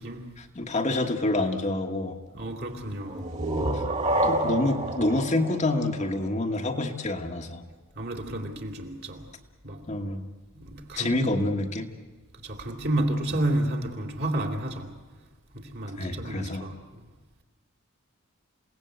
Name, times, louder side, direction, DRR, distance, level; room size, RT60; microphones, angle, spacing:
voice 1, 0.4-2.2 3.7-3.8 4.2-7.6 9.9-10.3 11.0-11.9 16.0-16.7, left 2 dB, 35° left, 1.4 m, -27 dB
voice 2, 2.3-3.2 7.9-9.2 9.6-9.8 10.5-11.3 12.4-14.9 15.5-17.0, right 1 dB, 50° right, 2.8 m, -31 dB
sound 1, 3.1-6.6, right 1 dB, 30° right, 2.2 m, -28 dB
28.0 x 17.5 x 8.2 m
head